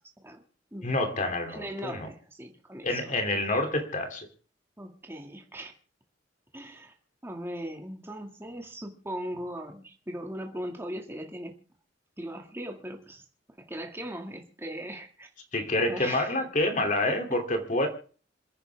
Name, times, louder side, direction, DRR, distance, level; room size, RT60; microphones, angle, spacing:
voice 1, 0.8-2.1 2.8-4.3 15.5-17.9, left 2 dB, 45° left, 5 dB, 2.9 m, -28 dB
voice 2, 1.4-3.6 4.8-5.7 6.5-6.9 7.2-11.6 12.2-13.2 13.6-15.3 15.8-16.4 17.1-17.2, right 1 dB, 15° right, 3 dB, 2.0 m, -39 dB
27.5 x 9.9 x 3.5 m, 0.39 s
head